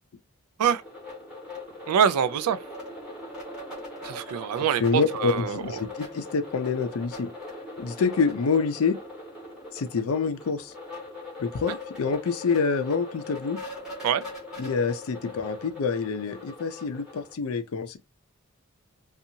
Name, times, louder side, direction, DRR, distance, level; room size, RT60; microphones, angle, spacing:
sound 1, 0.6-17.3, left 2 dB, ahead, 1.3 m, -40 dB
voice 1, 1.9-2.6 4.0-5.6 14.0-14.2, right 8 dB, 90° right, 0.3 m, -24 dB
voice 2, 4.8-7.3 7.8-9.0 9.7-10.7 11.4-13.6 14.6-18.0, left 5 dB, 70° left, 0.4 m, -27 dB
2.7 x 2.4 x 2.6 m
head